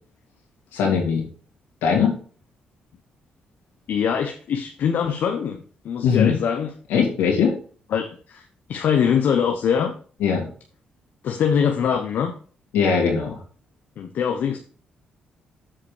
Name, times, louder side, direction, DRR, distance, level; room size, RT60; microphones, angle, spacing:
voice 1, 0.7-1.2 1.8-2.2 6.0-6.4 6.9-7.5 10.2-10.4 12.7-13.4, left 6 dB, 90° left, -1 dB, 2.8 m, -20 dB
voice 2, 3.9-5.6 5.8-6.7 7.9-9.9 11.2-12.3 14.0-14.6, left 7 dB, 70° left, 4 dB, 0.8 m, -23 dB
7.4 x 5.0 x 4.9 m, 0.42 s
supercardioid pair, 65°, 3 cm